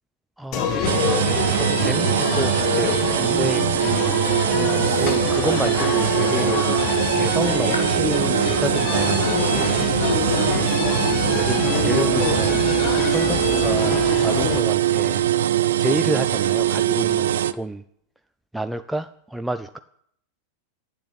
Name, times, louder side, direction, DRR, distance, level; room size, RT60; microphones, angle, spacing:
voice 1, 0.4-9.8 11.2-12.8 13.1-15.3 15.8-17.8 18.5-19.8, right 1 dB, 5° right, 10 dB, 0.4 m, -30 dB
sound 1, 0.5-14.6, left 7 dB, 40° left, 1.3 m, -26 dB
sound 2, 0.8-17.5, right 11 dB, 60° right, 0.4 m, -22 dB
sound 3, 7.4-11.4, left 3 dB, 75° left, 1.3 m, -42 dB
8.7 x 7.8 x 8.5 m, 0.69 s
figure-of-eight pair, 90°, 0 cm